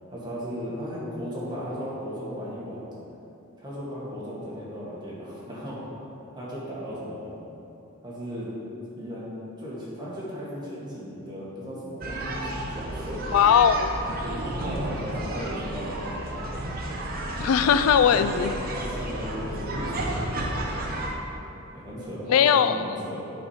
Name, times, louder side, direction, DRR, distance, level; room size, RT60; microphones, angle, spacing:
voice 1, 0.1-2.9 3.6-5.8 6.3-7.3 8.0-8.5 8.9-9.3 9.6-13.4 14.3-16.5 18.0-18.3 18.7-20.5 21.7-23.3, equal, 20° right, -8 dB, 1.7 m, -36 dB
sound 1, 12.0-21.1, right 1 dB, 45° right, 0.9 m, -32 dB
voice 2, 13.3-13.9 17.4-18.5 22.3-22.7, left 8 dB, 85° left, 11 dB, 0.3 m, -19 dB
8.6 x 4.3 x 5.0 m, 2.9 s
head